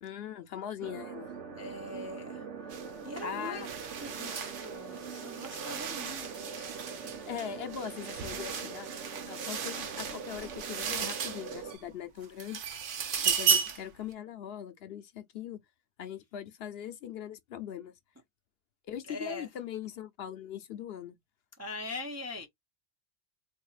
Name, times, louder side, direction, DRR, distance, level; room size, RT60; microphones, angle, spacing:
voice 1, 0.0-1.3 3.2-3.7 7.3-8.9 9.3-12.6 13.2-15.6 16.0-17.9 18.8-21.2, left 9 dB, 65° left, 0.8 m, -40 dB
sound 1, 0.8-11.8, right 5 dB, 85° right, 1.1 m, -43 dB
voice 2, 1.5-2.7 3.0-3.7 4.0-7.3 19.0-19.5 21.6-22.5, left 2 dB, 20° right, 0.5 m, -42 dB
sound 2, 2.7-2.9 3.2-11.8 12.2-13.9, right 6 dB, 55° right, 0.8 m, -35 dB
4.0 x 2.7 x 2.4 m
omnidirectional pair, 1.2 m